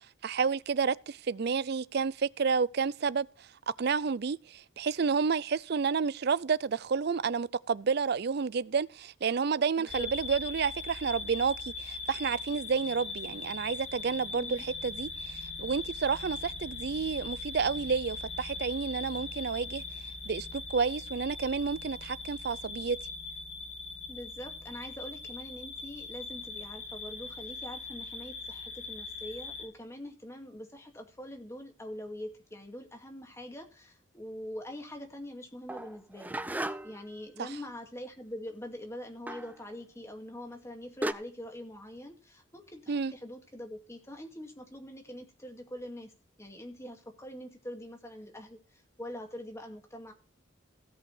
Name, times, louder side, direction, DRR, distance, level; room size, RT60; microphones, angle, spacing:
voice 1, 0.2-3.3 3.8-19.8 20.3-23.0 37.4-37.5 42.9-43.1, right 5 dB, 55° right, 0.5 m, -30 dB
voice 2, 9.8-10.1 14.3-14.6 24.1-46.1 46.4-50.1, left 1 dB, 15° left, 2.2 m, -44 dB
sound 1, 9.9-29.7, left 3 dB, 35° left, 1.7 m, -40 dB
sound 2, 35.7-37.1 39.3-39.6 40.6-40.7 41.0-41.1, right 1 dB, 10° right, 0.5 m, -35 dB
16.5 x 5.6 x 5.5 m
head